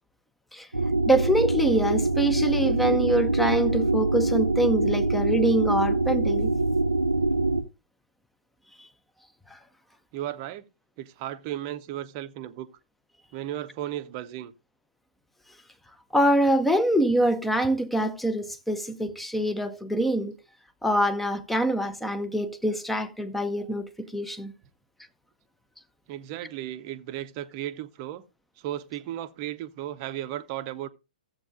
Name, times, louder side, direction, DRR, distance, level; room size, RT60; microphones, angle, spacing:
sound 1, 0.7-7.6, right 2 dB, 90° right, 0.7 m, -24 dB
voice 1, 1.1-6.5 9.5-9.6 16.1-20.3 20.8-24.5, right 1 dB, ahead, 0.7 m, -25 dB
voice 2, 10.1-10.7 11.0-12.7 13.3-14.5 26.1-28.2 28.6-30.9, right 12 dB, 30° right, 0.7 m, -35 dB
14.5 x 7.7 x 2.6 m
figure-of-eight pair, 120°, 4 cm